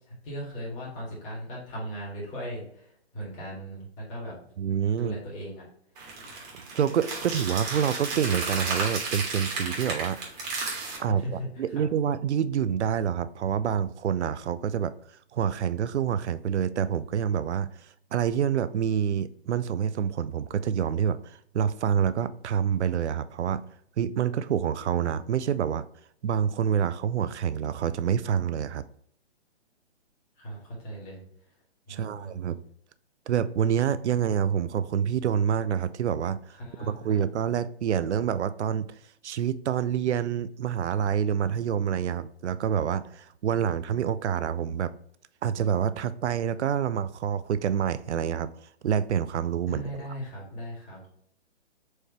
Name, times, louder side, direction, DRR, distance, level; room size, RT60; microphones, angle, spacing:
voice 1, 0.1-4.4 4.9-5.7 11.1-11.5 11.7-11.9 30.4-31.2 31.9-32.3 36.6-37.2 49.7-51.1, equal, 20° left, 1.8 m, -38 dB
voice 2, 4.6-5.2 6.7-10.2 11.0-14.9 15.3-17.7 18.1-23.7 24.0-25.9 26.2-28.9 31.9-32.6 33.3-38.9 39.2-44.9 45.4-48.5 48.8-50.1, right 8 dB, 85° right, 0.5 m, -27 dB
sound 1, 6.0-11.0, right 3 dB, 40° right, 1.7 m, -33 dB
4.6 x 3.2 x 2.9 m
hypercardioid pair, 150°, 33 cm